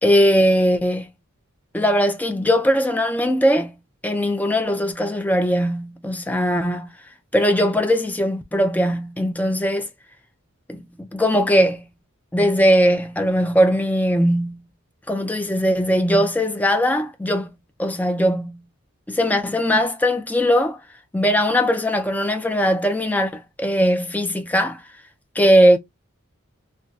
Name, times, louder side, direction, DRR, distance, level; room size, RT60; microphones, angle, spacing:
voice 1, 0.0-1.1 1.7-3.7 4.0-6.9 7.3-9.9 10.7-11.9 12.3-14.6 15.1-17.5 17.8-18.6 19.1-20.8 21.1-24.8 25.4-25.8, equal, 5° left, 0.3 m, -19 dB
3.9 x 2.1 x 2.3 m
head